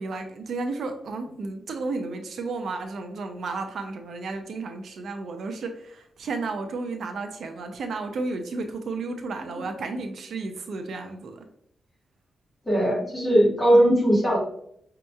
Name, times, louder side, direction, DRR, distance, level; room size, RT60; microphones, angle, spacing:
voice 1, 0.0-11.5, right 3 dB, 60° right, 6 dB, 0.4 m, -33 dB
voice 2, 12.6-14.4, right 1 dB, 10° left, -6 dB, 1.4 m, -19 dB
5.3 x 2.8 x 2.3 m, 0.70 s
wide cardioid pair, 175°, 0 cm